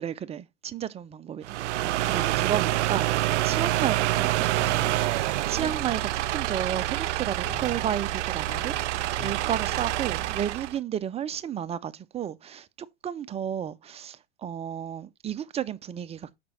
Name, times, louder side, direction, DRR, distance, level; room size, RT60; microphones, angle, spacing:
voice 1, 0.0-1.6 1.8-12.7 13.0-16.4, right 9 dB, 20° right, 0.5 m, -33 dB
sound 1, 1.4-10.8, right 15 dB, 75° right, 0.5 m, -27 dB
sound 2, 4.6-6.1 7.4-10.3, left 4 dB, 40° left, 2.0 m, -45 dB
6.0 x 5.2 x 5.8 m
hypercardioid pair, 105°, 35 cm